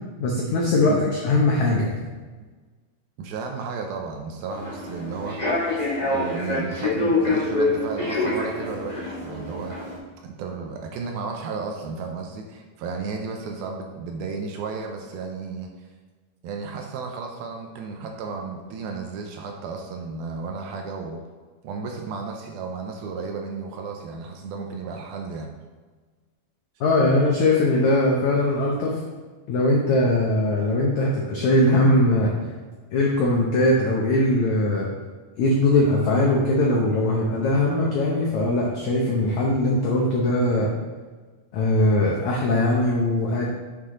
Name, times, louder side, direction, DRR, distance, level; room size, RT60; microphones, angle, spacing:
voice 1, 0.2-1.9 26.8-29.0 29.5-32.3 32.9-34.9 35.4-40.7 41.5-43.5, left 1 dB, 80° left, -2 dB, 1.7 m, -21 dB
voice 2, 3.2-5.6 6.1-10.0 10.2-15.7 16.4-21.2 21.6-25.5, right 4 dB, 80° right, 2 dB, 2.4 m, -33 dB
Human voice / Subway metro underground, 4.5-10.0, left 2 dB, 15° left, 1.5 m, -26 dB
7.5 x 6.5 x 3.8 m, 1.4 s
omnidirectional pair, 4.7 m